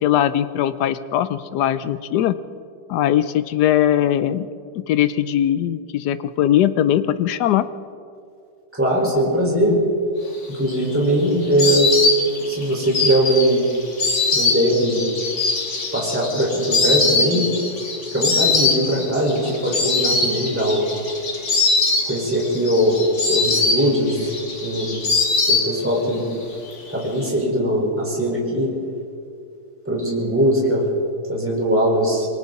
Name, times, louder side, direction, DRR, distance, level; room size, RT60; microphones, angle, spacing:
voice 1, 0.0-2.4 2.9-4.5 4.7-7.7, left 11 dB, 80° left, 13 dB, 0.9 m, -20 dB
voice 2, 8.8-9.7 10.6-11.9 12.4-13.7 14.3-15.1 15.9-17.5 18.1-20.9 22.1-23.0 23.3-24.3 24.6-25.0 25.5-26.2 26.9-28.7 29.9-30.8 31.3-32.3, equal, 5° right, -4 dB, 4.7 m, -20 dB
Insect, 10.4-26.1 26.4-27.2, left 3 dB, 45° left, 2.7 m, -22 dB
28.0 x 22.5 x 4.1 m, 2.5 s
omnidirectional pair, 2.4 m